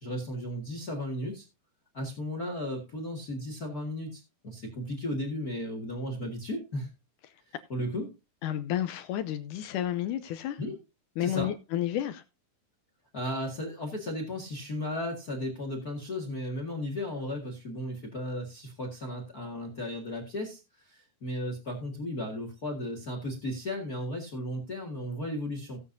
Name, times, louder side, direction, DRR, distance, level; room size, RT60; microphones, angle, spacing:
voice 1, 0.0-1.5 1.9-6.9 7.7-8.1 10.6-10.8 11.2-11.5 13.1-25.8, left 1 dB, 35° left, 1.7 m, -35 dB
voice 2, 8.4-10.6 11.2-12.2, left 11 dB, 80° left, 1.9 m, -31 dB
17.0 x 8.4 x 2.7 m
omnidirectional pair, 4.2 m